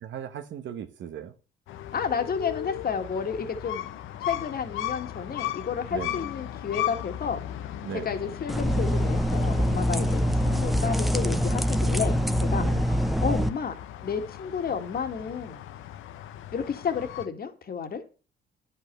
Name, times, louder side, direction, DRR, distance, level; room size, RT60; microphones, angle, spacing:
voice 1, 0.1-1.3 5.9-6.2 7.8-8.1 12.6-12.9, right 9 dB, 70° right, 1.2 m, -37 dB
sound 1, 1.7-17.3, left 12 dB, 85° left, 0.8 m, -37 dB
voice 2, 1.9-3.9 4.3-7.4 8.0-12.2 12.5-13.8 14.0-15.6 16.5-18.0, left 6 dB, 50° left, 2.0 m, -31 dB
sound 2, 8.5-13.5, equal, ahead, 0.8 m, -24 dB
10.0 x 5.8 x 6.8 m
cardioid pair, 90°, 20 cm